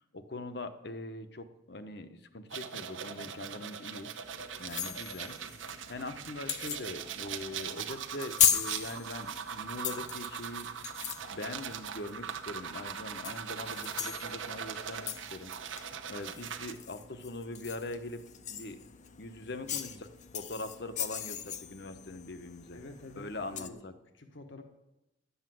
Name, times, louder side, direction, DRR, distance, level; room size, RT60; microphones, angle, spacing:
voice 1, 0.1-4.1 4.6-5.4 5.6-10.7 11.0-15.7 16.1-18.2 18.5-18.8 19.2-20.1 20.3-22.8 23.2-23.9, left 2 dB, 55° left, 9 dB, 1.0 m, -42 dB
sound 1, 2.5-16.7, right 8 dB, 90° right, 0.9 m, -41 dB
sound 2, 4.2-23.7, left 9 dB, 40° left, 0.6 m, -38 dB
voice 2, 19.4-20.0 22.7-24.6, left 2 dB, 80° left, 5 dB, 1.5 m, -50 dB
11.5 x 8.2 x 7.7 m, 0.90 s
head